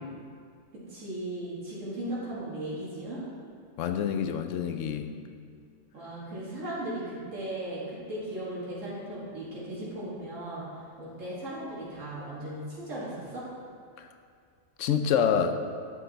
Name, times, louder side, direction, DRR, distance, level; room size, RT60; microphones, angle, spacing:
voice 1, 0.9-3.2 5.9-13.5, right 1 dB, 90° right, -8 dB, 2.2 m, -37 dB
voice 2, 3.8-5.1 14.0-14.1 14.8-15.6, left 7 dB, 85° left, 7 dB, 1.0 m, -27 dB
10.0 x 6.7 x 4.0 m, 2.3 s
omnidirectional pair, 1.3 m